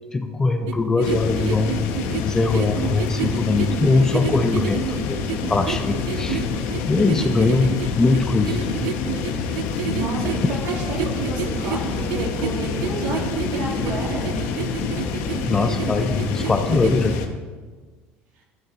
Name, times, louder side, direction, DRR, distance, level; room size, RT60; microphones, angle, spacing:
voice 1, 0.1-1.9 2.2-5.2 5.5-6.4 6.9-8.9 15.5-17.2, left 3 dB, 10° left, 7 dB, 0.4 m, -21 dB
sound 1, 0.7-17.2, right 10 dB, 90° right, 0.4 m, -30 dB
sound 2, 1.0-17.3, left 5 dB, 65° left, 0.8 m, -27 dB
voice 2, 9.8-14.3, right 3 dB, 70° right, -2 dB, 2.3 m, -30 dB
12.0 x 4.2 x 4.0 m, 1.4 s
cardioid pair, 155°, 4 cm